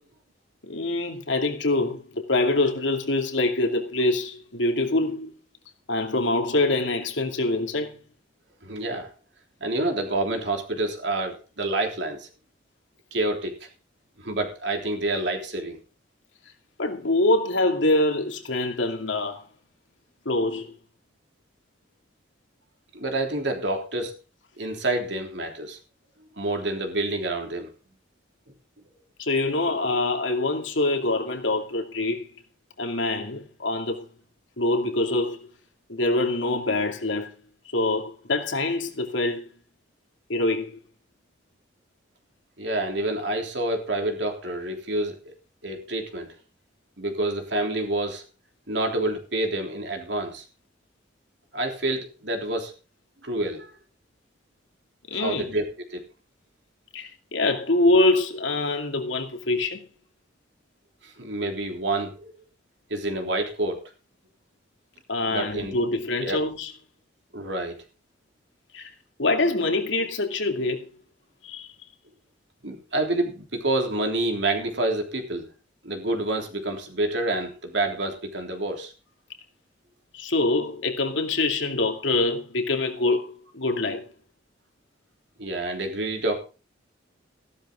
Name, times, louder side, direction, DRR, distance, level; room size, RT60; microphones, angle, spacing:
voice 1, 0.6-5.4 5.9-8.0 16.8-19.4 20.2-20.7 29.2-32.3 32.8-34.1 34.6-35.4 35.9-37.3 37.7-39.5 40.3-40.7 55.1-55.5 56.9-59.9 65.1-66.7 68.7-68.9 69.2-70.9 71.4-71.7 80.1-84.0, left 2 dB, 75° left, 2.5 m, -25 dB
voice 2, 8.6-9.1 9.6-12.3 13.1-13.7 14.2-15.8 22.9-24.1 24.6-25.8 26.4-27.7 42.6-45.3 45.6-46.3 47.0-48.2 48.7-50.4 51.5-52.7 53.2-53.7 55.1-55.6 55.9-56.0 61.0-62.3 62.9-63.8 65.3-65.7 66.2-66.4 67.3-67.8 72.6-75.5 75.8-78.9 85.4-86.4, right 2 dB, 65° right, 3.4 m, -28 dB
15.0 x 12.0 x 3.8 m
head